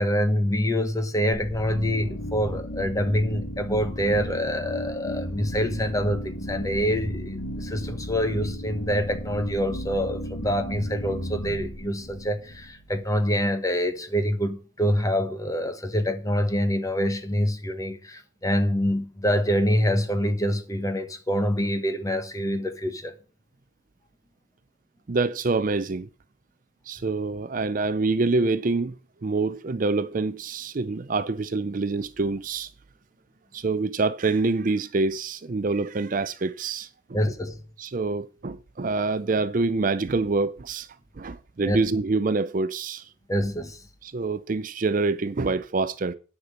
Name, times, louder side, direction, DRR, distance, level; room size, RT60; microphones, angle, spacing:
voice 1, 0.0-23.1 37.1-37.6 41.7-41.8 43.3-43.8, equal, 15° left, 1.3 m, -26 dB
sound 1, 1.3-13.1, equal, 90° left, 1.9 m, -34 dB
voice 2, 25.1-26.1 26.9-28.9 29.2-32.7 33.5-37.2 37.8-40.9 41.2-43.1 44.0-46.1, right 3 dB, 40° right, 0.5 m, -26 dB
9.7 x 5.9 x 7.9 m
head